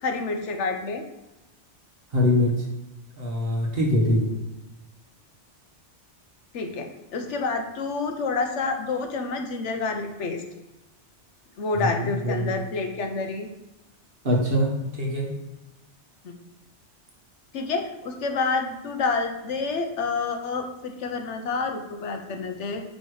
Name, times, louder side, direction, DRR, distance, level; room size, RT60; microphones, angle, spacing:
voice 1, 0.0-1.0 6.5-10.4 11.6-13.5 16.2-16.3 17.5-22.8, left 4 dB, 80° left, 4 dB, 1.1 m, -28 dB
voice 2, 2.1-2.5 3.1-4.3 11.8-12.5 14.2-15.3, left 1 dB, 55° right, -2 dB, 1.6 m, -23 dB
5.3 x 4.6 x 4.8 m, 1.0 s
omnidirectional pair, 1.2 m